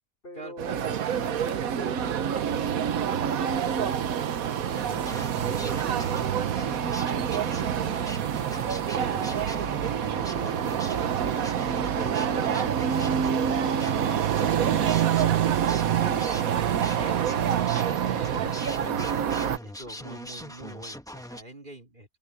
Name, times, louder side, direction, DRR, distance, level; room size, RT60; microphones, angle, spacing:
voice 1, 0.2-6.3 6.9-11.1 11.7-16.2, left 2 dB, 40° left, 4.1 m, -46 dB
sound 1, 0.6-19.6, right 9 dB, 80° right, 1.4 m, -26 dB
sound 2, 4.8-21.4, equal, 5° left, 1.0 m, -41 dB
voice 2, 9.2-9.6 16.0-16.3 16.9-22.2, right 2 dB, 35° right, 4.4 m, -44 dB
omnidirectional pair, 1.4 m